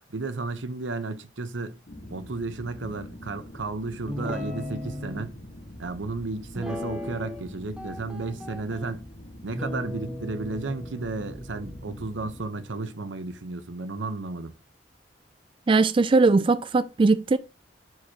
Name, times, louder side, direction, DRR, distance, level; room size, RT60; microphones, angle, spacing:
voice 1, 0.1-1.8 2.1-5.4 5.8-9.1 9.4-14.5, right 3 dB, 85° right, 0.9 m, -33 dB
sound 1, 1.8-12.4, equal, 55° left, 1.5 m, -44 dB
Guitar, 4.1-5.3 6.5-7.5 7.8-8.9 9.5-13.0, left 1 dB, 5° right, 1.2 m, -37 dB
voice 2, 15.7-17.4, right 3 dB, 30° right, 0.3 m, -20 dB
11.0 x 4.8 x 2.9 m
head